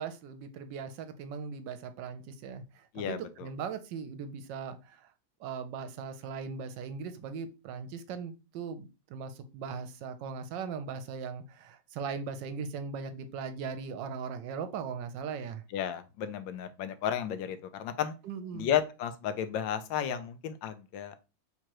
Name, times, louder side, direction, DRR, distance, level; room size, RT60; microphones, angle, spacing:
voice 1, 0.0-5.1 5.4-15.6 18.2-18.7, right 6 dB, 80° right, 10 dB, 1.3 m, -39 dB
voice 2, 2.9-3.5 15.7-18.1 18.5-21.2, left 9 dB, 90° left, 10 dB, 1.4 m, -33 dB
3.7 x 3.0 x 4.5 m, 0.29 s
omnidirectional pair, 2.0 m